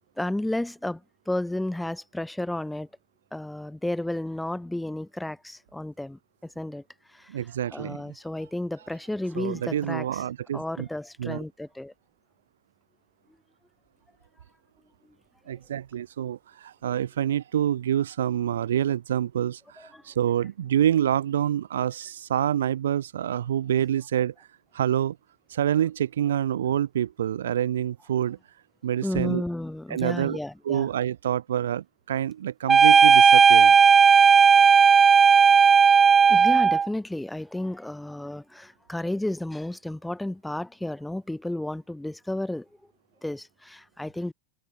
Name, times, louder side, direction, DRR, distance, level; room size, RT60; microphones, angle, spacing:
voice 1, 0.2-2.9 3.3-6.8 7.1-7.4 7.7-10.2 10.5-11.9 19.8-20.0 29.0-30.9 34.6-34.7 36.3-42.7 43.2-44.3, left 1 dB, 5° left, 5.6 m, -32 dB
voice 2, 7.3-8.0 9.4-10.9 11.2-11.4 15.5-24.3 24.7-25.2 25.5-28.4 28.8-29.4 29.9-30.4 30.7-33.8, right 10 dB, 70° right, 1.6 m, -27 dB
sound 1, 32.7-36.9, right 6 dB, 20° right, 0.6 m, -15 dB
figure-of-eight pair, 90°, 0 cm